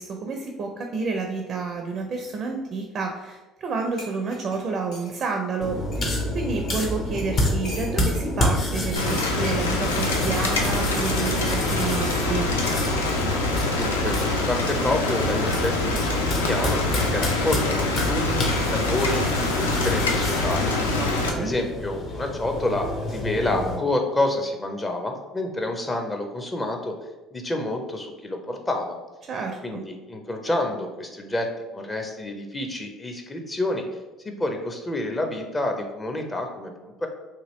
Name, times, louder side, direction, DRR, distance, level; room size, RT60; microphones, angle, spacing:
voice 1, 0.0-12.5 21.0-21.5 29.3-29.8, right 4 dB, 50° right, 3 dB, 0.4 m, -30 dB
sound 1, 3.6-3.7 4.0-5.1 5.9-6.0 6.7-6.8 7.2-8.3 9.1-9.3 10.4-10.7, left 1 dB, 65° left, 1.1 m, -43 dB
sound 2, 5.6-23.8, left 1 dB, 50° left, 0.8 m, -28 dB
Rain, 9.0-21.3, left 2 dB, 90° left, 0.3 m, -25 dB
voice 2, 13.7-20.7 21.3-27.0 27.3-29.0 29.6-31.5 31.7-33.9 34.2-37.1, left 1 dB, 20° left, 3 dB, 0.5 m, -28 dB
2.9 x 2.5 x 3.0 m, 1.1 s
hypercardioid pair, 60°, 0 cm